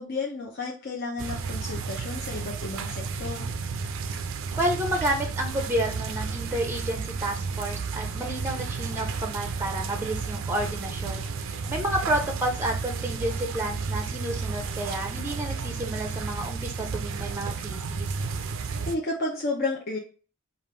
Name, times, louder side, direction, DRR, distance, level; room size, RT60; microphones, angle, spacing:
voice 1, 0.0-3.5 18.9-20.0, left 3 dB, 50° left, -2 dB, 0.7 m, -32 dB
sound 1, 1.2-19.0, right 5 dB, 65° right, 0.4 m, -32 dB
voice 2, 4.6-18.1, right 1 dB, 10° right, 4 dB, 0.5 m, -30 dB
5.1 x 2.5 x 3.1 m, 0.37 s
head